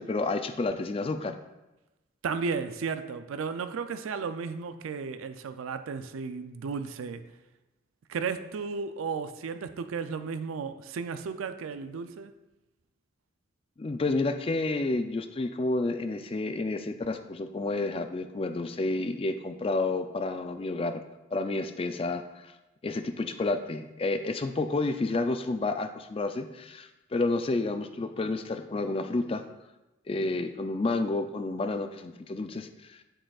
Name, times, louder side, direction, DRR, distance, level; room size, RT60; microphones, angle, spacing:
voice 1, 0.0-1.4 13.8-21.0 21.3-22.5 22.8-29.5 30.1-33.0, left 2 dB, 25° left, 8 dB, 0.3 m, -30 dB
voice 2, 2.2-7.2 8.1-12.3, right 5 dB, 90° right, 10 dB, 0.4 m, -34 dB
7.7 x 6.4 x 2.4 m, 1.0 s
head